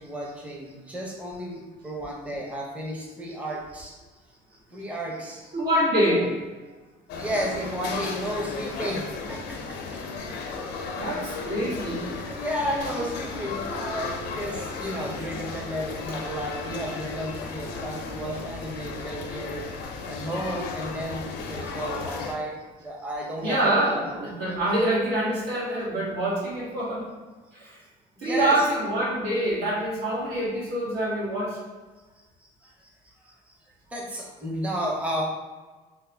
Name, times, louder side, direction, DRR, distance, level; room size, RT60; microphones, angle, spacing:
voice 1, 0.0-4.0 4.7-5.6 6.1-6.3 6.7-6.8 7.1-11.4 12.2-19.6 20.1-24.3 28.2-28.7 32.6-33.3 33.9-35.2, equal, 10° right, -2 dB, 0.6 m, -33 dB
voice 2, 5.5-6.3 10.9-12.0 23.4-27.1 27.5-27.8 28.2-31.6, right 1 dB, 80° right, -7 dB, 1.5 m, -25 dB
sound 1, 7.1-22.3, left 4 dB, 80° left, 0.5 m, -35 dB
3.4 x 2.1 x 3.3 m, 1.3 s
cardioid pair, 110°, 17 cm